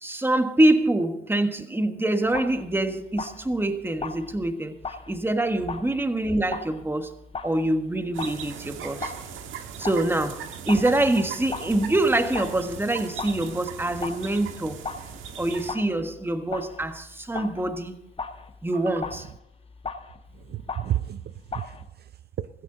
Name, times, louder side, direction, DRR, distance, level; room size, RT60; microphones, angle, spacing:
voice 1, 0.0-7.1 7.4-9.1 9.8-14.8 15.4-18.0 18.6-19.2, right 1 dB, 10° right, 1.4 m, -25 dB
sound 1, 2.2-21.9, left 4 dB, 30° left, 1.1 m, -39 dB
sound 2, 8.1-15.7, right 8 dB, 85° right, 1.5 m, -38 dB
voice 2, 18.7-19.1 20.3-22.5, right 12 dB, 55° right, 0.5 m, -33 dB
16.0 x 14.5 x 3.9 m
cardioid pair, 90°, 20 cm